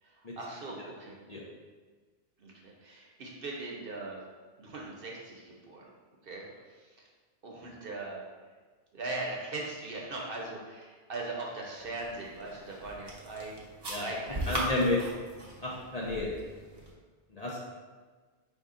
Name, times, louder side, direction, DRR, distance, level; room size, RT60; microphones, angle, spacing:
voice 1, 0.0-1.1 2.4-4.2 4.6-5.9 6.2-6.4 6.7-7.0 7.4-8.2 8.9-13.5 13.9-14.7, right 2 dB, 60° right, -2 dB, 0.9 m, -40 dB
sound 1, 11.8-16.9, right 1 dB, 30° right, 0.6 m, -40 dB
voice 2, 14.5-15.0 15.6-16.3 17.3-17.6, left 2 dB, 45° left, -5 dB, 0.6 m, -31 dB
4.9 x 2.7 x 3.6 m, 1.4 s
omnidirectional pair, 1.2 m